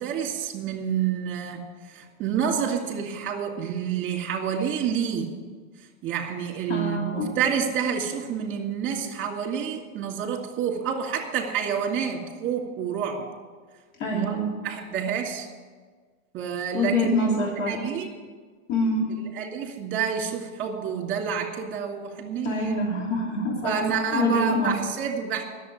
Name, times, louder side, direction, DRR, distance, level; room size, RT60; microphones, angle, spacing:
voice 1, 0.0-5.3 6.0-13.3 14.1-15.5 16.3-18.1 19.2-22.7 23.6-25.4, right 7 dB, 30° right, 3 dB, 2.3 m, -28 dB
voice 2, 6.7-7.3 14.0-14.5 16.7-17.8 18.7-19.1 22.4-23.7 24.1-24.7, left 1 dB, 60° left, -2 dB, 3.2 m, -25 dB
11.0 x 7.4 x 9.3 m, 1.5 s
hypercardioid pair, 125°, 40 cm